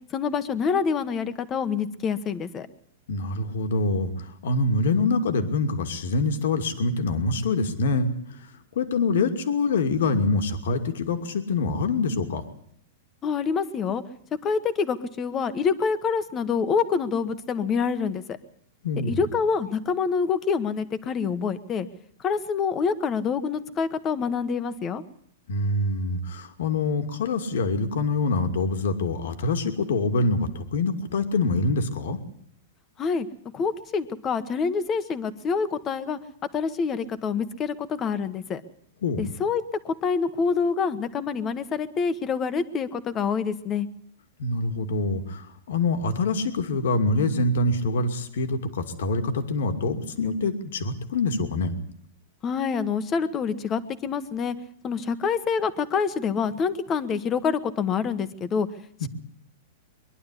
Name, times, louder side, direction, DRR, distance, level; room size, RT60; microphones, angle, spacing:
voice 1, 0.1-2.7 13.2-14.0 14.4-18.4 19.1-21.9 22.2-25.0 33.0-33.3 33.5-36.2 36.5-38.6 39.2-43.9 52.4-54.5 54.8-58.7, left 6 dB, 20° left, 12 dB, 1.3 m, -26 dB
voice 2, 3.1-12.4 18.8-19.3 25.5-32.2 39.0-39.3 44.4-51.7 59.0-59.1, left 3 dB, 75° left, 7 dB, 2.5 m, -25 dB
22.5 x 11.5 x 9.9 m, 0.68 s
supercardioid pair, 155°, 0 cm